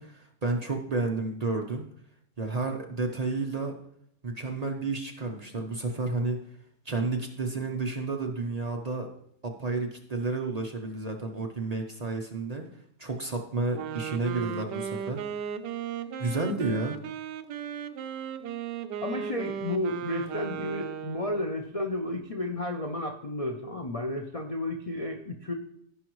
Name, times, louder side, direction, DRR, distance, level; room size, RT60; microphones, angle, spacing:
voice 1, 0.0-1.9 2.4-3.7 4.2-6.4 6.9-9.1 9.4-12.7 13.0-15.2 16.2-17.0, right 3 dB, 45° right, 2 dB, 0.5 m, -31 dB
Wind instrument woodwind instrument, 13.7-21.6, right 8 dB, 80° right, 1.2 m, -36 dB
voice 2, 19.0-25.5, left 1 dB, 65° left, 3 dB, 0.3 m, -32 dB
15.0 x 5.4 x 3.1 m, 0.68 s
omnidirectional pair, 1.8 m